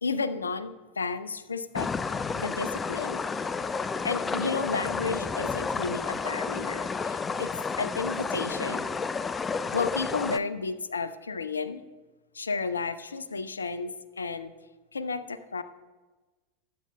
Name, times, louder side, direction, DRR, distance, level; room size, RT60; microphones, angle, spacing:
voice 1, 0.0-1.9 2.3-3.2 4.0-7.5 7.8-8.9 9.7-11.8 12.3-14.5 14.9-15.6, left 4 dB, 80° left, 14 dB, 0.5 m, -32 dB
sound 1, 1.7-10.4, left 5 dB, 20° left, 0.4 m, -31 dB
19.5 x 8.4 x 2.2 m, 1.2 s
figure-of-eight pair, 85°, 0 cm